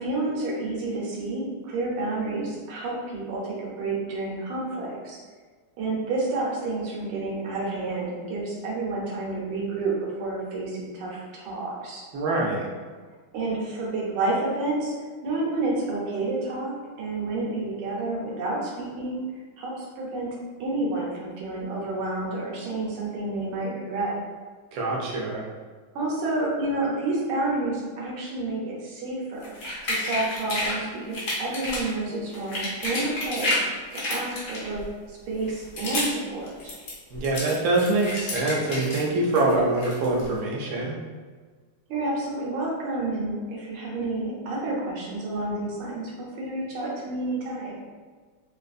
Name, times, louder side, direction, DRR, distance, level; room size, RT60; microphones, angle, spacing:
voice 1, 0.0-5.2 5.8-9.9 10.2-12.0 13.3-14.9 15.2-16.7 17.0-19.2 19.6-20.3 20.6-24.2 25.9-29.5 29.8-33.6 33.9-34.8 35.1-36.7 41.9-47.8, right 2 dB, 90° right, -3 dB, 1.7 m, -29 dB
voice 2, 12.1-12.7 24.7-25.5 37.1-40.9, right 2 dB, 70° right, -3 dB, 0.8 m, -24 dB
sound 1, 29.4-30.8 31.1-31.9 32.3-33.6 33.9-34.9 35.4-36.2 36.5-39.0 39.3-40.3, left 1 dB, 60° left, 0.9 m, -30 dB
3.7 x 2.4 x 2.5 m, 1.5 s
omnidirectional pair, 2.3 m